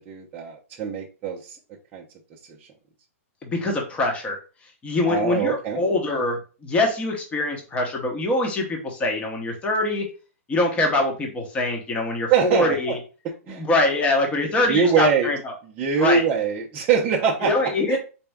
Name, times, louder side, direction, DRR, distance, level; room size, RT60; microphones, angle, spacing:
voice 1, 0.1-1.6 1.9-2.0 5.0-5.8 12.3-13.0 13.2-13.7 14.7-15.3 15.6-18.0, right 6 dB, 20° right, -3 dB, 0.6 m, -23 dB
voice 2, 3.4-4.4 4.8-10.1 10.5-13.0 13.5-15.5 16.0-16.2 17.4-18.0, left 2 dB, 15° left, 1 dB, 0.9 m, -24 dB
4.1 x 2.2 x 3.4 m, 0.35 s
hypercardioid pair, 145°, 8 cm